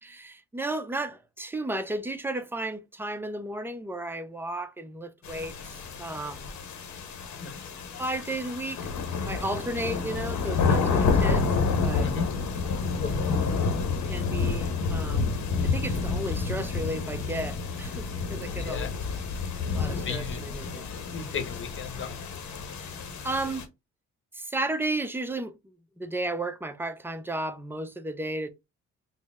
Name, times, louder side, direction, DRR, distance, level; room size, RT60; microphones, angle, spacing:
voice 1, 0.0-6.5 8.0-8.9 9.3-11.5 11.8-12.1 14.1-15.3 15.6-18.9 19.7-20.9 23.2-23.7 24.3-25.6 26.0-28.5, right 1 dB, 5° right, 0.5 m, -33 dB
sound 1, 5.2-23.6, left 4 dB, 70° left, 0.9 m, -29 dB
voice 2, 12.0-12.3 12.8-13.1 18.5-18.9 20.0-20.4 21.1-22.1, left 5 dB, 40° left, 0.9 m, -34 dB
4.0 x 2.0 x 3.5 m
cardioid pair, 90°, 30 cm